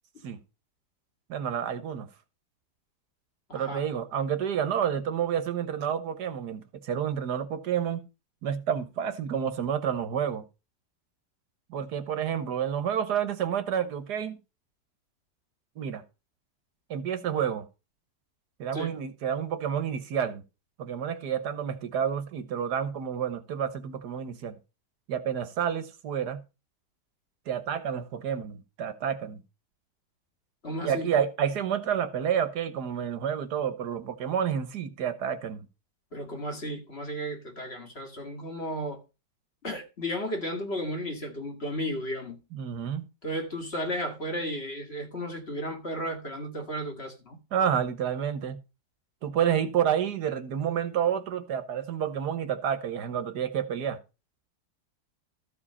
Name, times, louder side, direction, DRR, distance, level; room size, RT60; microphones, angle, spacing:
voice 1, 1.3-2.1 3.5-8.0 8.4-10.4 11.7-14.4 15.8-16.0 16.9-17.6 18.6-20.4 20.8-24.6 25.1-26.4 27.5-29.4 30.8-35.7 42.5-43.0 47.5-48.6 49.2-54.0, right 8 dB, 75° right, 1.7 m, -29 dB
voice 2, 3.5-3.8 18.7-19.0 30.6-31.1 36.1-39.0 39.6-42.4 43.2-47.4, equal, 40° left, 2.1 m, -34 dB
13.5 x 5.0 x 5.5 m
omnidirectional pair, 1.8 m